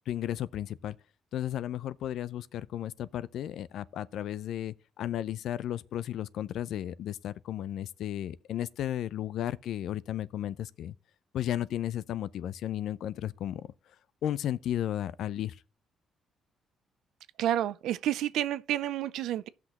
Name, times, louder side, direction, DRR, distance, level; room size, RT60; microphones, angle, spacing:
voice 1, 0.1-1.0 1.3-10.9 11.3-13.7 14.2-15.6, left 11 dB, 75° left, 0.4 m, -34 dB
voice 2, 17.4-19.5, right 12 dB, 85° right, 0.4 m, -30 dB
15.5 x 5.9 x 2.9 m
cardioid pair, 90°, 0 cm